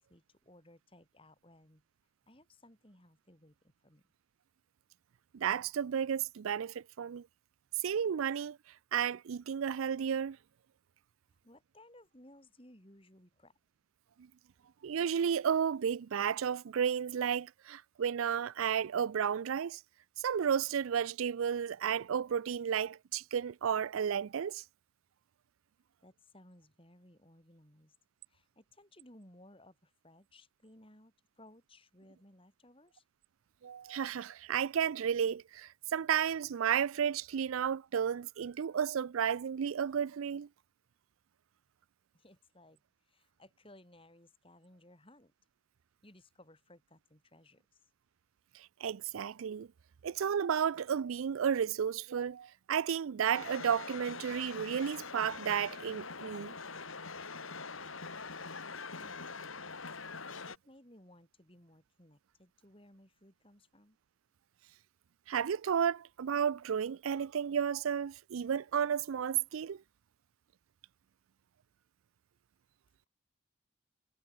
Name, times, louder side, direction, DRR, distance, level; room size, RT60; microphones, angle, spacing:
voice 1, 0.0-1.8 2.3-4.0 11.3-13.5 26.0-27.9 28.3-33.0 42.1-45.3 46.0-47.9 58.9-59.5 60.5-64.0, left 1 dB, 25° left, 6.7 m, -60 dB
voice 2, 5.3-7.3 7.8-8.6 8.9-10.4 14.8-19.8 20.2-24.6 33.6-40.5 48.5-49.7 50.0-56.5 65.3-69.8, right 8 dB, 80° right, 0.4 m, -32 dB
sound 1, 53.3-60.6, left 4 dB, 80° left, 3.9 m, -44 dB
head